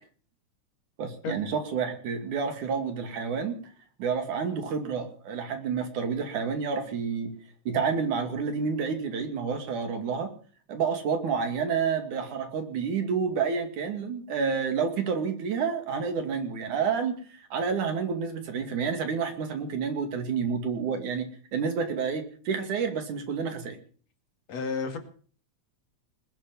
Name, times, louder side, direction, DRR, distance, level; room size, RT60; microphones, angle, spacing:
voice 1, 1.0-3.6 4.0-7.3 7.7-10.3 10.7-17.2 17.5-23.8, right 6 dB, 85° right, 7 dB, 4.0 m, -29 dB
voice 2, 24.5-25.0, left 5 dB, 60° left, 6 dB, 3.3 m, -31 dB
20.0 x 9.0 x 7.6 m, 0.43 s
omnidirectional pair, 3.4 m